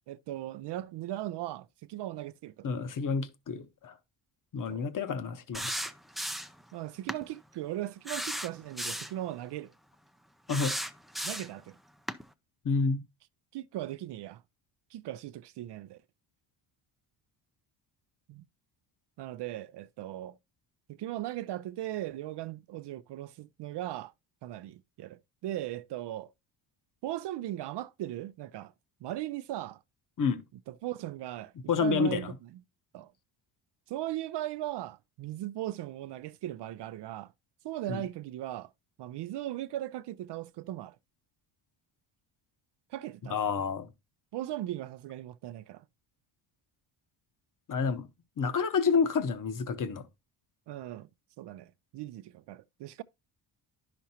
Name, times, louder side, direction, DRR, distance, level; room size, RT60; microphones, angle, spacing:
voice 1, 0.1-2.8 4.7-4.8 6.7-9.7 11.2-11.8 13.5-14.4 14.9-16.0 18.3-18.4 19.2-20.4 20.9-24.1 24.4-26.3 27.0-28.7 29.0-29.8 30.7-31.5 31.8-32.6 32.9-33.1 33.9-37.3 37.6-38.7 39.0-41.0 42.9-43.4 44.3-45.9 50.7-51.1 51.4-53.0, right 14 dB, 60° right, 0.5 m, -38 dB
voice 2, 2.6-3.9 4.5-5.8 10.5-10.7 12.6-13.0 30.2-30.4 31.7-32.3 37.9-38.0 43.3-43.9 47.7-48.1 48.4-50.0, left 5 dB, 40° left, 1.0 m, -29 dB
sound 1, 5.5-6.6 7.1-7.2 8.1-9.2 10.5-11.6 12.1-12.2, equal, ahead, 0.4 m, -35 dB
10.0 x 6.0 x 2.8 m
cardioid pair, 80°, 48 cm